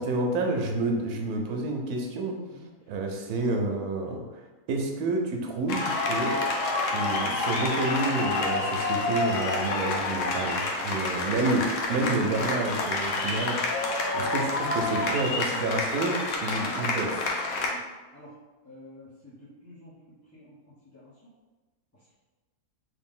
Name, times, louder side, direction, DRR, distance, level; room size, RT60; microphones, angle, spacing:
voice 1, 0.0-2.4 2.9-4.4 4.7-6.3 6.9-13.6 14.1-17.3, right 2 dB, 90° right, 2 dB, 1.1 m, -29 dB
voice 2, 2.5-2.9 6.3-6.5 14.2-14.3 17.7-17.8 18.1-18.3 18.6-21.3 21.9-22.1, left 1 dB, 15° left, -11 dB, 0.7 m, -51 dB
sound 1, 5.7-17.7, left 3 dB, 65° left, 0.9 m, -28 dB
3.5 x 2.6 x 3.6 m, 1.2 s
omnidirectional pair, 1.6 m